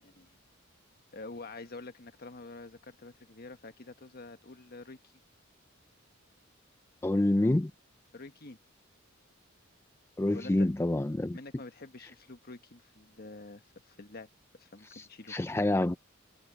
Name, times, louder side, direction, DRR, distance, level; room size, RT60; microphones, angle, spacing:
voice 1, 0.0-0.4 1.1-5.1 8.1-8.6 10.3-10.7 11.3-14.3 14.6-15.4, left 3 dB, 50° left, 1.3 m, -47 dB
voice 2, 7.0-7.7 10.2-11.4 14.9-16.0, left 1 dB, 10° left, 0.4 m, -27 dB
head